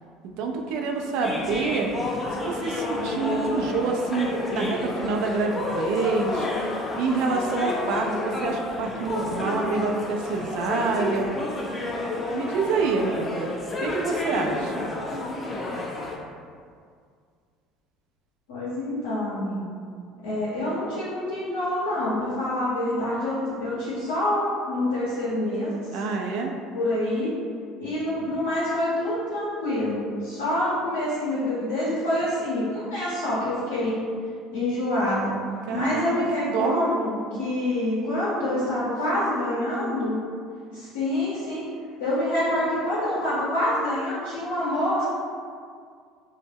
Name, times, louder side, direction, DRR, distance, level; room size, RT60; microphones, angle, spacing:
voice 1, 0.2-1.9 2.3-6.5 7.0-11.3 12.3-13.5 13.8-14.9 25.9-26.5 35.7-36.8, right 4 dB, 70° right, 2 dB, 0.3 m, -27 dB
sound 1, 1.2-16.2, left 2 dB, 30° left, 0.5 m, -30 dB
voice 2, 18.5-19.6 20.2-25.7 26.7-27.3 27.8-34.0 34.5-35.3 35.7-40.2 40.7-41.6 42.0-45.0, left 1 dB, 85° left, -9 dB, 0.6 m, -26 dB
2.1 x 2.1 x 3.3 m, 2.1 s
hypercardioid pair, 75°, 0 cm